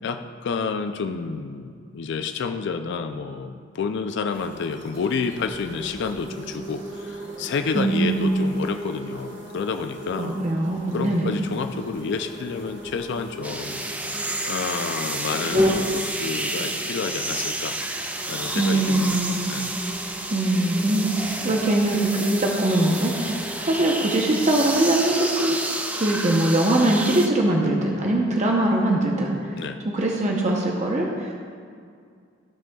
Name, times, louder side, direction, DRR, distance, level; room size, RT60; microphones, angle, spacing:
voice 1, 0.0-10.4 10.9-13.8 14.5-17.8 18.3-19.2 19.5-19.7 21.4-21.6 29.6-29.8, left 5 dB, 65° left, 7 dB, 0.4 m, -29 dB
sound 1, 4.3-23.8, equal, 65° right, 2.1 m, -34 dB
voice 2, 7.7-8.4 10.2-11.3 18.5-19.5 20.3-23.3 23.6-25.6 25.9-29.6 29.9-31.3, right 1 dB, 35° right, -1 dB, 0.8 m, -22 dB
sound 2, 13.4-27.3, right 1 dB, 10° right, 0.5 m, -30 dB
15.5 x 5.9 x 2.3 m, 2.2 s
head